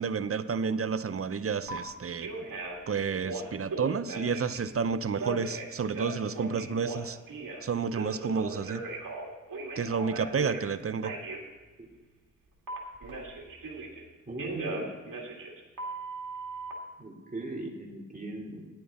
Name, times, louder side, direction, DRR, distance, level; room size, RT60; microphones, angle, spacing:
voice 1, 0.0-2.3 2.9-7.2 7.6-8.8 9.8-11.1, right 5 dB, 45° right, 13 dB, 0.6 m, -30 dB
Telephone, 1.7-1.8 2.2-2.8 3.2-4.6 5.2-7.6 7.9-10.7 11.0-11.4 12.7-14.0 14.4-16.7, right 3 dB, 75° right, 2.2 m, -38 dB
voice 2, 14.3-14.9 17.0-18.7, right 2 dB, 25° right, -1 dB, 2.7 m, -39 dB
10.5 x 10.5 x 4.2 m, 1.3 s
cardioid pair, 60°, 33 cm